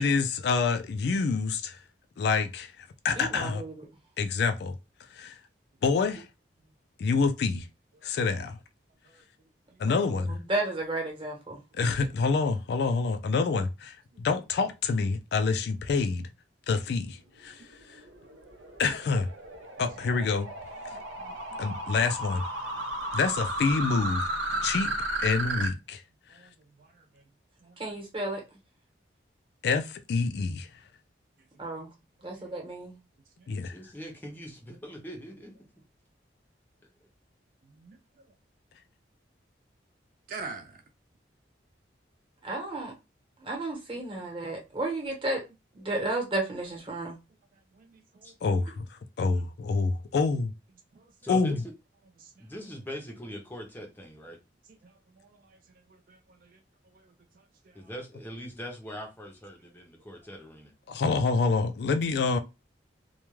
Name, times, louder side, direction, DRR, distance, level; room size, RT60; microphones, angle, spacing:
voice 1, 0.0-1.8 2.2-3.6 4.2-4.7 5.1-5.3 5.8-6.3 7.0-7.7 8.0-8.6 9.8-10.3 11.7-16.3 16.7-17.6 18.8-19.3 19.8-20.5 21.6-22.4 23.1-24.2 24.6-24.9 25.2-26.0 29.6-30.7 33.5-33.7 48.4-48.9 49.2-50.5 51.3-51.6 60.9-62.4, left 4 dB, 60° left, 0.3 m, -27 dB
voice 2, 3.2-3.7 9.9-11.6 27.8-28.4 31.6-31.9 32.2-32.9 42.4-42.9 43.4-45.4 45.8-47.2, right 2 dB, 30° right, 1.0 m, -33 dB
sound 1, 17.6-25.7, right 1 dB, 85° right, 0.7 m, -34 dB
voice 3, 20.9-21.6 26.3-27.2 27.6-27.9 31.5-31.9 32.2-32.5 33.4-33.5 37.6-38.0 40.3-40.8 44.0-44.1 47.7-48.3 50.9-51.1 52.2-52.5 54.7-55.6 55.9-56.6 56.8-57.9, right 4 dB, 50° right, 0.3 m, -48 dB
voice 4, 33.6-35.5 48.2-48.3 51.2-51.6 52.4-54.4 57.7-60.7, equal, 10° left, 0.5 m, -41 dB
2.3 x 2.2 x 3.0 m
head